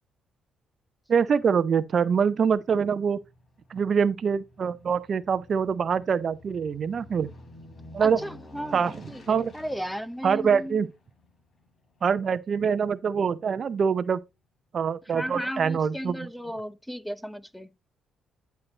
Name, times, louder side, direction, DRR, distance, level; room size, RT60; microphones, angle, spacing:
voice 1, 1.1-3.2 3.7-7.3 7.9-8.2 8.7-8.9 9.3-9.5 10.2-10.9 12.0-14.2 14.7-16.3, right 6 dB, 50° right, 0.6 m, -24 dB
Aircraft, 1.4-13.9 14.3-14.4, left 1 dB, 45° left, 3.3 m, -51 dB
voice 2, 8.0-10.8 15.1-17.7, equal, ahead, 0.7 m, -35 dB
11.0 x 4.6 x 4.0 m
cardioid pair, 90°, 0 cm